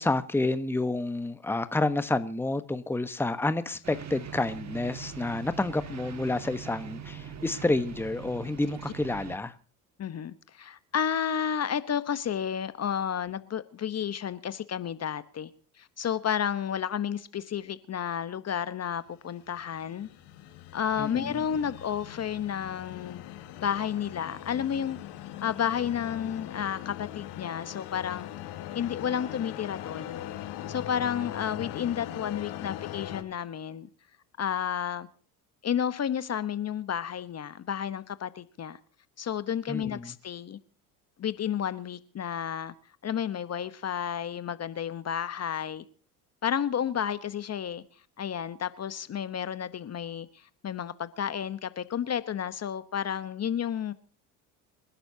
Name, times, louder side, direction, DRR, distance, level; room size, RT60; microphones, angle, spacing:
voice 1, 0.0-9.5 21.0-21.3 39.7-40.1, left 2 dB, 5° left, 1.1 m, -29 dB
sound 1, 3.8-9.4, right 8 dB, 35° right, 2.0 m, -42 dB
voice 2, 10.0-15.5 15.8-20.1 20.7-23.2 23.6-25.0 25.4-28.3 28.7-30.2 30.7-33.9 34.4-35.1 35.6-38.8 39.2-40.6 41.2-42.7 43.0-45.8 46.4-47.8 48.2-53.9, left 8 dB, 35° left, 1.1 m, -31 dB
sound 2, 19.1-33.2, left 12 dB, 65° left, 2.1 m, -40 dB
27.5 x 11.5 x 2.8 m
hypercardioid pair, 75°, 44 cm